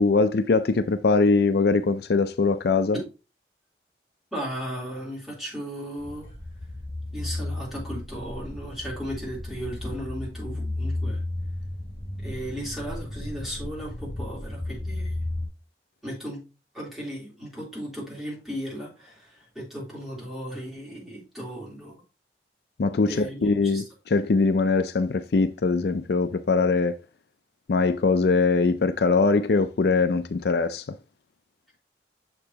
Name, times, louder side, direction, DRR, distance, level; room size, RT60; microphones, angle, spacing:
voice 1, 0.0-3.0 22.8-26.9 27.7-30.8, left 4 dB, 65° left, 0.4 m, -22 dB
voice 2, 4.3-6.3 7.1-11.2 12.2-15.1 16.0-16.4 16.7-22.0 23.1-23.8, equal, ahead, 3.2 m, -36 dB
sound 1, 6.0-15.5, left 1 dB, 40° left, 3.2 m, -34 dB
6.7 x 6.6 x 2.8 m
head